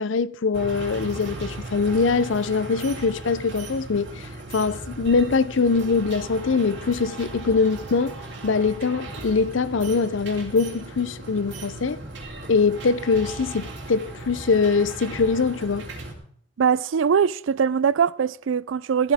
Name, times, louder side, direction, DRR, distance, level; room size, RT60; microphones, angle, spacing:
voice 1, 0.0-12.0 12.5-15.9, left 4 dB, 85° left, 0.6 m, -23 dB
sound 1, 0.5-16.1, right 2 dB, 65° right, 3.5 m, -37 dB
voice 2, 16.6-19.1, right 7 dB, 90° right, 0.4 m, -21 dB
15.5 x 14.5 x 3.6 m
head